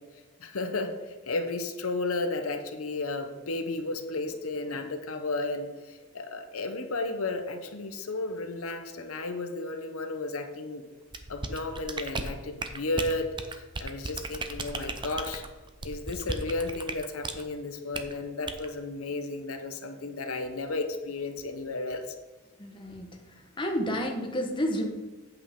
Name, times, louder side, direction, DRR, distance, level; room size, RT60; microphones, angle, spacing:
voice 1, 0.4-10.8 11.3-15.4 15.8-22.1, left 2 dB, 75° left, 6 dB, 0.8 m, -33 dB
sound 1, 11.1-17.4 17.9-18.1 18.5-18.7, right 3 dB, 20° right, 0.6 m, -35 dB
voice 2, 22.6-23.2 23.6-24.9, equal, 25° left, 2 dB, 1.1 m, -30 dB
8.9 x 7.7 x 3.7 m, 1.3 s
head